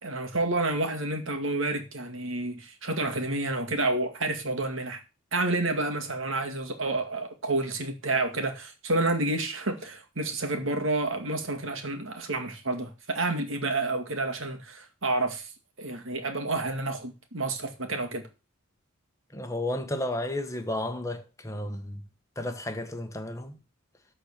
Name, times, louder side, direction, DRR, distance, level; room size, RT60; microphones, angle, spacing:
voice 1, 0.0-5.0 5.3-15.5 15.8-18.2, right 2 dB, 70° right, 2.2 m, -29 dB
voice 2, 19.3-22.0 22.4-23.6, left 1 dB, 15° left, 1.3 m, -32 dB
13.0 x 4.4 x 6.7 m
head